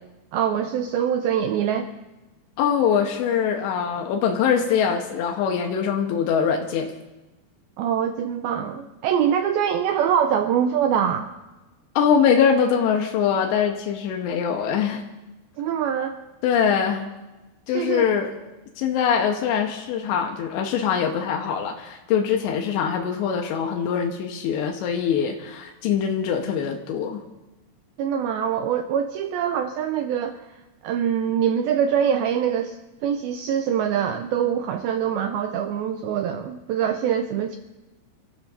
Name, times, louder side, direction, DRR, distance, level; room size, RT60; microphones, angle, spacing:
voice 1, 0.3-1.9 7.8-11.3 15.6-16.2 17.7-18.0 28.0-30.5 30.8-32.8 33.0-37.6, right 8 dB, 90° right, 7 dB, 2.1 m, -24 dB
voice 2, 2.6-6.9 12.0-15.0 16.4-17.1 17.7-18.3 18.8-27.2, left 7 dB, 90° left, 2 dB, 3.2 m, -23 dB
29.5 x 13.0 x 2.6 m, 1.1 s
omnidirectional pair, 5.0 m